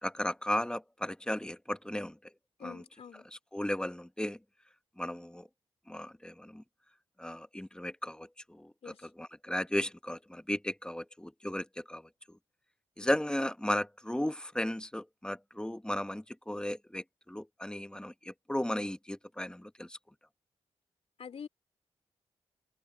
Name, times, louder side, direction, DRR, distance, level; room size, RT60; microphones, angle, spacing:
voice 1, 0.0-2.2 2.6-2.8 3.2-4.4 5.0-5.5 5.9-6.6 7.2-12.4 13.0-20.0, left 1 dB, 10° left, 1.3 m, -35 dB
voice 2, 2.6-3.2 8.8-9.1 21.2-21.5, left 7 dB, 65° left, 2.5 m, -46 dB
supercardioid pair, 45°, 11 cm